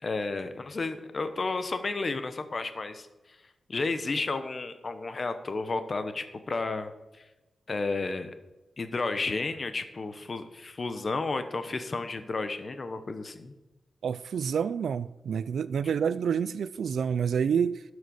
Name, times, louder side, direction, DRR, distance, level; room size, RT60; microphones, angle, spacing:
voice 1, 0.0-3.1 3.7-6.9 7.7-8.3 8.8-13.5, left 3 dB, 35° left, 10 dB, 0.9 m, -32 dB
voice 2, 14.0-17.8, right 7 dB, 75° right, 16 dB, 0.3 m, -28 dB
12.0 x 6.4 x 6.4 m, 1.1 s
wide cardioid pair, 165°, 0 cm